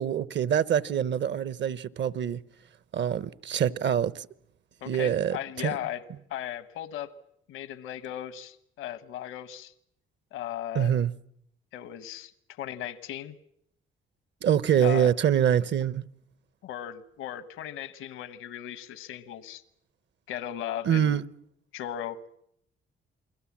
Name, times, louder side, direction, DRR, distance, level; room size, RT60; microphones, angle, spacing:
voice 1, 0.0-2.4 2.9-4.3 4.9-5.7 10.7-11.1 14.4-16.0 20.8-21.2, right 9 dB, 60° right, 0.9 m, -25 dB
voice 2, 4.8-6.0 6.3-7.1 7.5-9.7 10.3-10.9 11.7-12.3 12.6-13.3 14.8-15.1 16.6-19.6 20.3-21.2 21.7-22.2, left 11 dB, 85° left, 1.2 m, -37 dB
29.0 x 22.0 x 7.4 m
cardioid pair, 80°, 21 cm